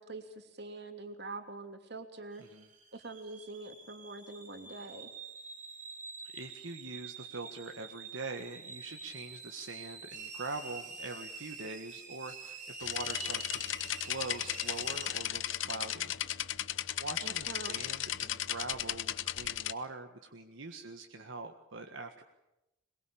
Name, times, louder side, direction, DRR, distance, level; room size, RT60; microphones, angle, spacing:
voice 1, 0.0-2.4 2.9-5.1 17.2-17.8, right 3 dB, 55° right, 7 dB, 2.8 m, -44 dB
sound 1, 2.3-15.1, right 4 dB, 35° right, 3.5 m, -47 dB
voice 2, 6.3-13.6 14.0-16.6 17.0-22.2, right 3 dB, 70° right, 4 dB, 1.7 m, -43 dB
sound 2, 12.8-19.7, left 12 dB, 70° left, 0.9 m, -36 dB
22.5 x 22.0 x 8.7 m, 0.91 s
head